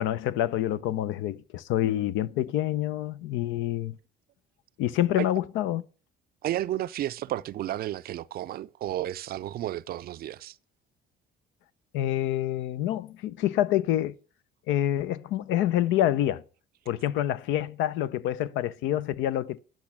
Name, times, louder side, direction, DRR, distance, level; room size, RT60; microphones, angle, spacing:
voice 1, 0.0-4.0 4.8-5.8 11.9-14.1 14.7-16.4 16.9-19.6, left 12 dB, 80° left, 0.6 m, -27 dB
voice 2, 6.4-10.6, right 13 dB, 50° right, 0.4 m, -32 dB
10.5 x 6.1 x 6.0 m
cardioid pair, 115°, 20 cm